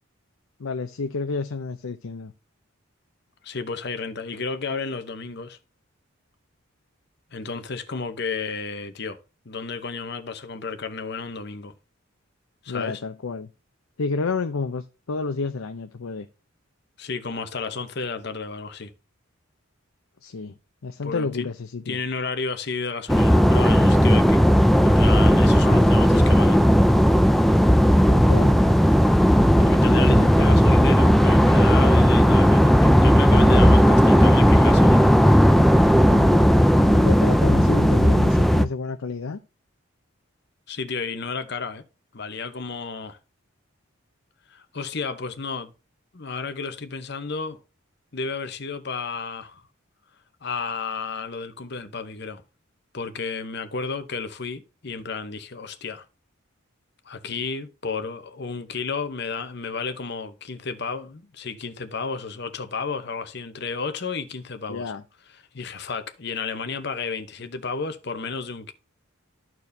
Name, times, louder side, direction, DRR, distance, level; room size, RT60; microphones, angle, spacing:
voice 1, 0.6-2.3 12.7-13.5 14.0-16.3 20.2-20.5 20.8-22.0 28.1-28.6 36.0-36.5 36.8-39.4 64.7-65.0, left 4 dB, 75° left, 0.6 m, -30 dB
voice 2, 3.4-5.6 7.3-9.2 9.4-11.7 12.6-13.0 17.0-18.9 21.0-21.5 21.9-26.6 29.6-35.1 40.7-41.8 42.1-43.2 44.5-45.7 46.1-47.6 48.1-49.6 50.4-52.4 52.9-56.0 57.0-64.9 65.3-68.7, left 4 dB, 50° left, 0.9 m, -32 dB
sound 1, 23.1-38.6, equal, ahead, 0.3 m, -16 dB
13.5 x 4.5 x 2.7 m
head